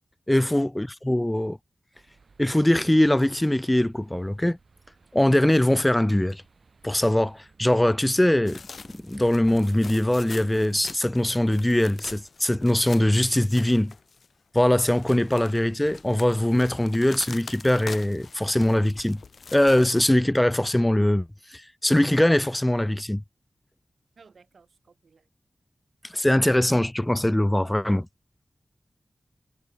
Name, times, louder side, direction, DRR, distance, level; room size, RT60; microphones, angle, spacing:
voice 1, 0.3-1.6 2.4-4.6 5.1-6.4 6.8-8.6 8.9-13.9 14.5-19.2 19.5-23.2 26.0-28.1, left 1 dB, 10° left, 0.5 m, -22 dB
sound 1, 1.9-10.2, right 4 dB, 70° right, 7.8 m, -59 dB
sound 2, 8.4-14.3 14.6-20.0, left 4 dB, 80° left, 2.0 m, -44 dB
voice 2, 24.2-25.3, right 5 dB, 90° right, 7.5 m, -55 dB
wide cardioid pair, 105°, 0 cm